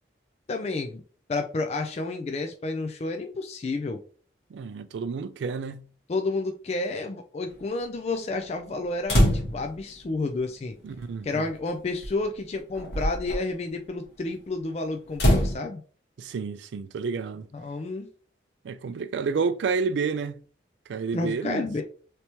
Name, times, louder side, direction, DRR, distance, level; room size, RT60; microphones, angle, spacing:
voice 1, 0.5-1.0 1.3-4.0 6.1-9.3 9.5-10.7 11.2-15.8 17.5-18.1 21.1-21.8, left 3 dB, 35° left, 0.3 m, -30 dB
voice 2, 4.5-5.9 10.8-11.5 16.2-17.5 18.6-20.4 20.9-21.6, right 5 dB, 85° right, 0.3 m, -30 dB
sound 1, 9.1-9.8 11.0-11.1 12.0-12.2 12.7-13.4 15.1-15.5, equal, 70° left, 1.3 m, -22 dB
3.3 x 2.9 x 2.8 m
head